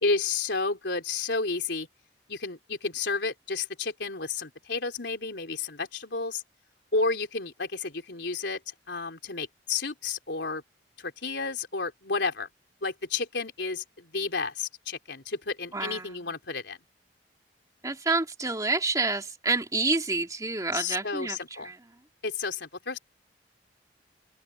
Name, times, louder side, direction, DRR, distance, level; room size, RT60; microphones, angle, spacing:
voice 1, 0.0-1.9 2.3-6.4 6.9-10.6 11.0-12.5 12.8-16.8 20.7-21.7 22.2-23.0, left 4 dB, 75° left, 3.9 m, -31 dB
voice 2, 15.7-16.2 17.8-21.8, right 3 dB, 20° right, 2.6 m, -28 dB
open air
head